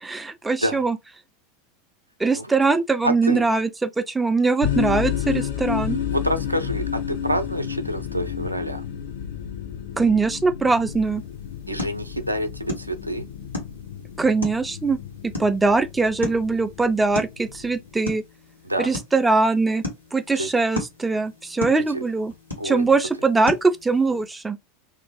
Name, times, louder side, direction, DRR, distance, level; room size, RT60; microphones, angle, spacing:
voice 1, 0.0-1.0 2.2-6.0 10.0-11.2 14.2-15.0 15.2-18.2 18.8-19.8 20.1-22.3 22.6-24.6, right 3 dB, 10° right, 0.3 m, -22 dB
voice 2, 3.0-3.4 6.1-8.9 11.7-13.3 18.6-18.9 20.4-20.5 21.9-22.0 22.6-22.9, equal, 85° right, 0.4 m, -27 dB
sound 1, 4.6-17.9, left 9 dB, 65° left, 0.7 m, -31 dB
sound 2, 10.9-24.3, left 2 dB, 85° left, 1.3 m, -37 dB
2.5 x 2.4 x 3.0 m
figure-of-eight pair, 85°, 0 cm